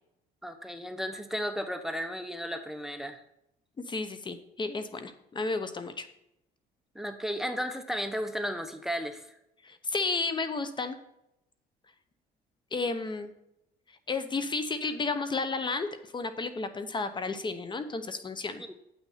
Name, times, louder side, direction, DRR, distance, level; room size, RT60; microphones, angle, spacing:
voice 1, 0.4-3.2 6.9-9.3 18.7-18.8, equal, ahead, 8 dB, 0.8 m, -34 dB
voice 2, 3.9-6.1 9.6-11.0 12.7-13.3 14.1-18.6, left 3 dB, 25° left, 10 dB, 0.9 m, -32 dB
9.0 x 6.2 x 5.7 m, 0.83 s
cardioid pair, 110°, 17 cm